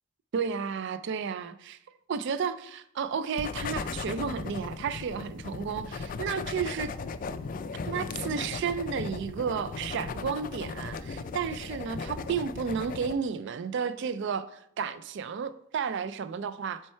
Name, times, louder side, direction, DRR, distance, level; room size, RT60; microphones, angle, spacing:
voice 1, 0.3-1.8 2.1-6.9 7.9-16.8, right 6 dB, 55° right, 0.4 m, -32 dB
sound 1, 3.4-13.1, left 4 dB, 40° left, 0.3 m, -37 dB
7.5 x 4.5 x 4.4 m
head